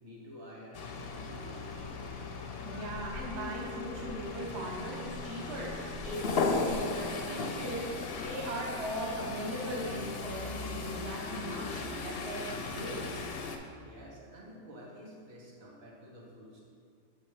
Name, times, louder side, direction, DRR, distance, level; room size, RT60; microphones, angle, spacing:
voice 1, 0.0-2.3 13.8-16.6, equal, 80° right, -5 dB, 1.6 m, -50 dB
sound 1, 0.7-13.6, left 4 dB, 60° left, 0.6 m, -37 dB
voice 2, 2.6-13.3, right 1 dB, 55° right, -2 dB, 1.0 m, -39 dB
6.2 x 5.4 x 3.1 m, 2.3 s
omnidirectional pair, 1.4 m